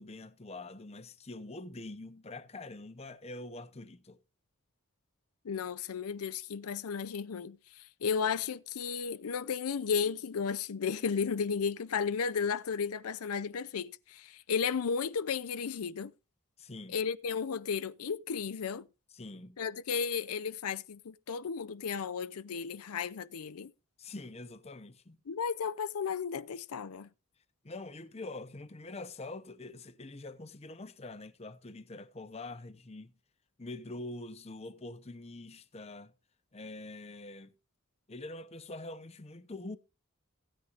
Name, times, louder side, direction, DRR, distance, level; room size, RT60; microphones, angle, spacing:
voice 1, 0.0-4.2 16.6-17.0 19.1-19.6 24.0-25.2 27.6-33.1 33.6-36.1 36.5-37.5 38.1-39.8, left 2 dB, 30° left, 0.7 m, -45 dB
voice 2, 5.4-16.1 16.9-18.9 19.6-23.7 25.3-27.1, left 6 dB, 90° left, 0.5 m, -34 dB
16.5 x 9.6 x 2.5 m
head